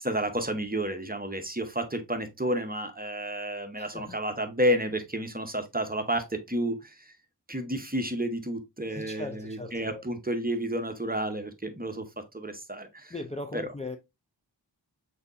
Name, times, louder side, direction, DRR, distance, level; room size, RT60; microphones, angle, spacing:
voice 1, 0.0-7.1 7.5-13.1 13.5-13.7, right 1 dB, 20° right, 0.7 m, -31 dB
voice 2, 3.8-4.2 8.9-10.0 13.1-14.0, left 2 dB, 15° left, 0.5 m, -39 dB
6.3 x 2.8 x 2.5 m
wide cardioid pair, 40°, 43 cm